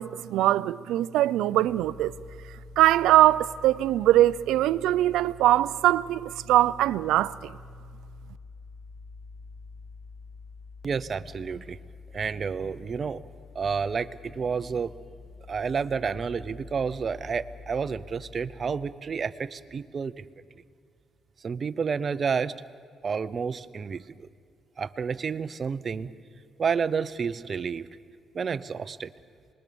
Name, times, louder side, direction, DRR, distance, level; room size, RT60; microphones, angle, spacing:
voice 1, 0.0-2.1 2.8-7.5, right 14 dB, 90° right, 0.5 m, -22 dB
sound 1, 1.7-18.8, left 5 dB, 40° left, 6.6 m, -48 dB
voice 2, 10.8-11.8 12.1-13.2 13.5-15.0 15.5-20.2 21.4-22.5 23.0-24.3 24.8-26.1 26.6-27.9 28.3-29.1, right 6 dB, 45° right, 0.7 m, -30 dB
26.0 x 21.0 x 7.0 m
cardioid pair, 90°, 0 cm